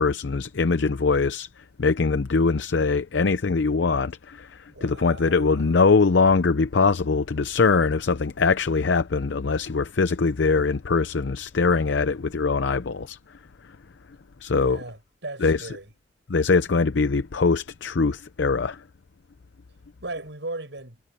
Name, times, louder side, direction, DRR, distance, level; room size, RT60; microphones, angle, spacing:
voice 1, 0.0-1.5 1.8-13.2 14.4-14.8 15.4-15.7 16.3-18.8, left 4 dB, 90° left, 0.6 m, -22 dB
voice 2, 4.7-6.0 14.5-15.9 20.0-21.0, right 2 dB, 85° right, 6.4 m, -38 dB
head